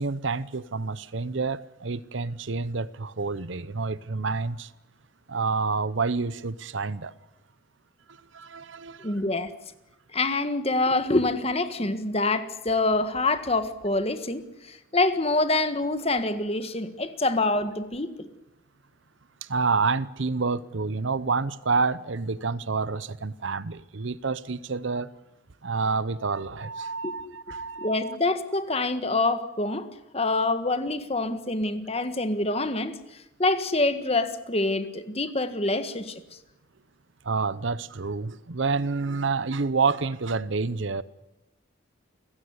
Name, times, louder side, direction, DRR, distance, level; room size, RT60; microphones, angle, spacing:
voice 1, 0.0-4.7 5.3-7.1 8.1-9.2 19.4-25.1 25.6-28.2 37.2-41.0, right 4 dB, 65° right, 0.8 m, -28 dB
voice 2, 9.0-9.5 10.1-14.4 14.7-18.3 27.0-27.4 27.8-29.9 30.1-32.9 33.4-36.2, left 2 dB, 30° left, 1.6 m, -26 dB
29.0 x 16.0 x 9.6 m
head